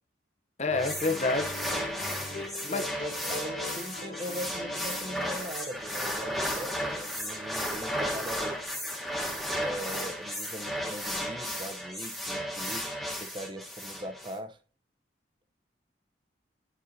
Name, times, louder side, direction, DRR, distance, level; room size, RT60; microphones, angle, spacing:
sound 1, 0.6-5.8, left 3 dB, 85° left, 1.5 m, -43 dB
voice 1, 0.6-1.6 2.7-2.8, left 3 dB, 35° left, 0.7 m, -28 dB
sound 2, 0.7-14.3, equal, ahead, 1.1 m, -34 dB
voice 2, 2.1-8.6 9.5-14.6, right 1 dB, 25° right, 0.6 m, -41 dB
10.5 x 5.4 x 2.7 m
head